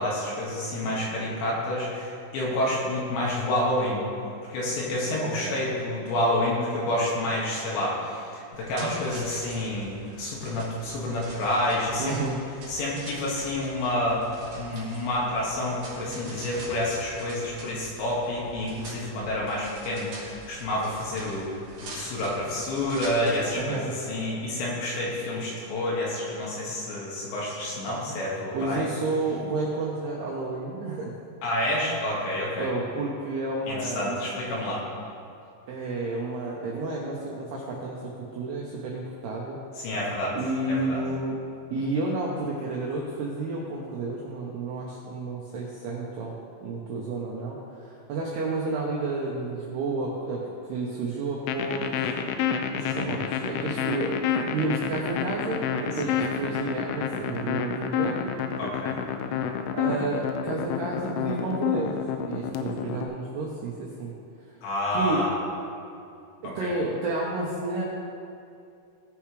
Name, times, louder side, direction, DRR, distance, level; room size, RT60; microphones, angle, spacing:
voice 1, 0.0-4.0 4.5-12.2 12.7-14.2 14.5-21.5 21.8-28.9 31.4-32.7 33.7-34.8 39.8-40.4 40.7-41.0 52.9-53.1 56.0-56.2 58.6-59.0 64.6-65.4 66.4-66.7, left 1 dB, 65° left, -5 dB, 3.7 m, -29 dB
voice 2, 5.2-5.6 12.0-12.4 23.5-23.9 28.5-31.1 32.6-34.3 35.7-39.6 40.3-41.4 41.7-46.3 46.6-50.4 50.7-52.1 52.7-58.3 59.7-61.9 62.2-64.1 64.9-65.2 66.4-67.8, right 3 dB, 80° right, -3 dB, 2.4 m, -31 dB
sound 1, 8.5-23.6, right 2 dB, 50° right, 2.6 m, -44 dB
sound 2, 51.5-63.1, left 8 dB, 85° left, 3.2 m, -28 dB
18.0 x 6.8 x 3.3 m, 2.5 s
omnidirectional pair, 6.0 m